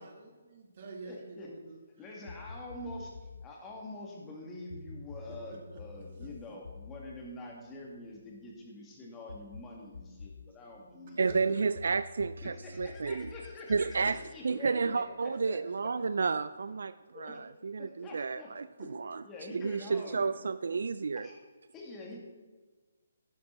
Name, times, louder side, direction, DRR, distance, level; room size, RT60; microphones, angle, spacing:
voice 1, 0.0-1.8 5.7-6.3 11.2-11.7, right 3 dB, 45° right, 3 dB, 1.9 m, -47 dB
voice 2, 1.0-1.5 2.0-11.2 12.4-15.6 17.1-17.4 17.8-18.5 18.8-18.9 19.2-20.3 21.1-21.4 21.7-22.2, left 2 dB, 15° left, -1 dB, 2.3 m, -46 dB
sound 1, 2.3-3.6 4.7-8.4 9.3-10.5 11.3-15.2, left 4 dB, 65° left, 0.6 m, -48 dB
voice 3, 11.2-13.3 13.7-19.2 19.5-21.3, right 4 dB, 65° right, 14 dB, 0.3 m, -31 dB
11.5 x 9.5 x 4.1 m, 1.3 s
figure-of-eight pair, 145°, 0 cm